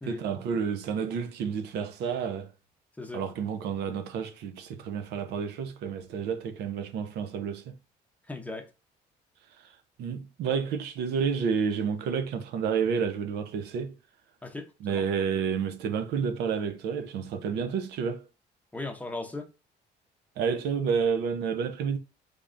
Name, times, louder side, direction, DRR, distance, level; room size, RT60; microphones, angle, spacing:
voice 1, 0.1-2.5 3.1-7.8 9.6-9.7 10.0-13.9 14.8-18.3 20.4-22.0, right 6 dB, 80° right, 0.6 m, -30 dB
voice 2, 8.3-8.7 14.4-15.1 18.7-19.5, left 2 dB, 10° left, 0.7 m, -37 dB
3.5 x 3.3 x 2.5 m
cardioid pair, 110°, 17 cm